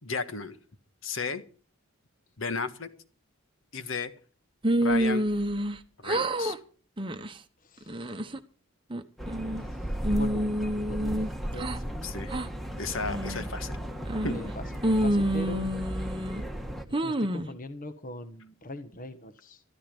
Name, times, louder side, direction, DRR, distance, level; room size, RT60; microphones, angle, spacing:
voice 1, 0.0-0.6 1.0-1.4 2.4-2.9 3.7-4.1 4.8-5.3 6.0-6.6 12.0-12.4 12.8-13.8 14.2-14.3, left 4 dB, 65° left, 10 dB, 1.6 m, -33 dB
sound 1, 4.6-5.8 6.0-6.6 7.0-7.3 7.8-8.4 8.9-9.7 10.0-11.8 12.3-12.5 13.0-13.5 14.1-14.5 14.8-16.4 16.9-17.5, right 1 dB, 25° right, 1.0 m, -28 dB
voice 2, 7.6-8.1 9.5-12.1 14.3-14.6 15.0-15.7 17.0-19.6, left 1 dB, 40° left, 9 dB, 1.2 m, -42 dB
sound 2, 9.2-16.9, equal, ahead, 1.4 m, -35 dB
13.5 x 13.5 x 5.3 m, 0.39 s
head